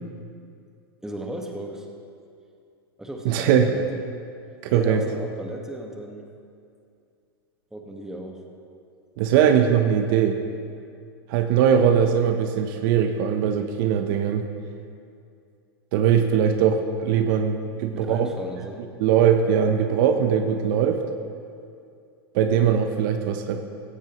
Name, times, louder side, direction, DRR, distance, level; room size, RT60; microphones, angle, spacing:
voice 1, 1.0-1.9 3.0-4.0 4.7-6.3 7.7-8.4 11.8-11.9 17.9-18.8, right 1 dB, 5° right, 1 dB, 1.7 m, -35 dB
voice 2, 3.2-3.7 4.6-5.0 9.2-10.4 11.3-14.5 15.9-18.3 19.0-21.0 22.3-23.6, right 8 dB, 60° right, 6 dB, 1.0 m, -20 dB
16.5 x 15.5 x 3.2 m, 2.4 s
hypercardioid pair, 100°, 13 cm